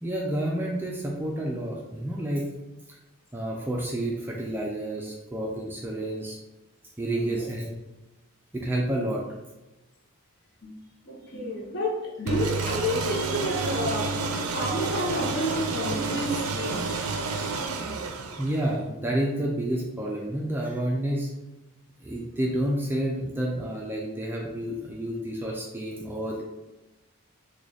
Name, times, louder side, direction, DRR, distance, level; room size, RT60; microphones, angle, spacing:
voice 1, 0.0-2.5 3.3-6.4 7.0-7.8 8.5-9.2 17.5-17.6 18.4-21.3 22.0-26.4, right 1 dB, 10° right, -3 dB, 0.3 m, -29 dB
voice 2, 7.1-7.5 10.6-10.8 11.1-14.1 14.5-17.0, left 1 dB, 50° left, -1 dB, 0.7 m, -30 dB
sound 1, 12.3-18.8, right 4 dB, 75° right, 0.4 m, -30 dB
3.8 x 2.3 x 3.2 m, 1.0 s
head